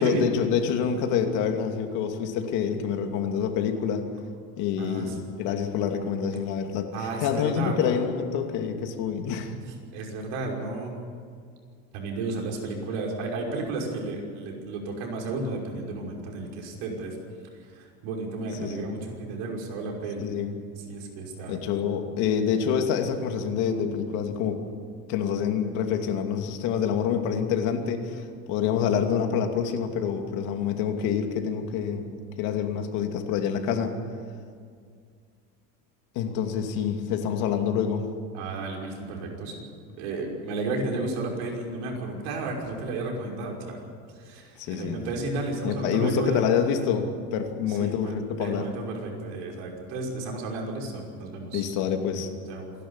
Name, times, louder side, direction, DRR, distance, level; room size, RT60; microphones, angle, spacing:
voice 1, 0.0-4.1 4.6-9.5 18.6-18.9 20.2-20.6 21.5-24.6 25.1-34.0 36.1-38.1 44.6-45.0 45.6-48.7 51.5-52.3, left 7 dB, 65° left, 5 dB, 2.7 m, -27 dB
voice 2, 4.8-5.2 6.9-7.8 9.9-11.0 11.9-17.2 17.7-20.3 20.9-21.6 38.3-39.7 40.0-43.8 44.1-46.4 47.7-51.7 52.5-52.7, right 3 dB, 80° right, 0 dB, 5.8 m, -33 dB
27.0 x 11.5 x 9.9 m, 2.1 s
cardioid pair, 155°, 31 cm